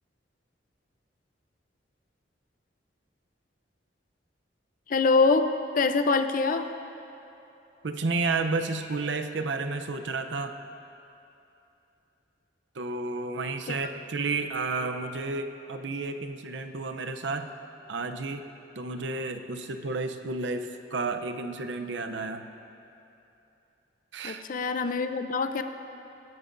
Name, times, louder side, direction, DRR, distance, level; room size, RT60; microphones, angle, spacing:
voice 1, 4.9-5.5 5.7-6.7 13.7-13.8 24.2-25.6, left 4 dB, 50° left, 9 dB, 0.5 m, -24 dB
voice 2, 7.8-10.6 12.8-17.5 17.9-18.5 18.7-22.5 24.1-24.4, right 3 dB, 85° right, 7 dB, 0.6 m, -31 dB
19.0 x 12.0 x 2.6 m, 2.8 s
head